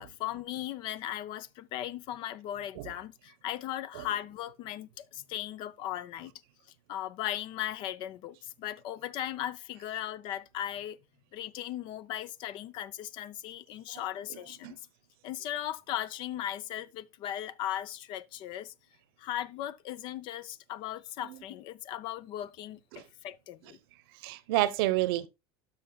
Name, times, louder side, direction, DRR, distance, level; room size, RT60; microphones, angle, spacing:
voice 1, 0.0-6.3 6.9-11.0 11.3-14.8 15.2-18.7 19.2-23.8, left 12 dB, 40° left, 0.4 m, -37 dB
voice 2, 24.2-25.3, right 16 dB, 70° right, 0.8 m, -29 dB
12.5 x 5.7 x 2.3 m
cardioid pair, 175°, 13 cm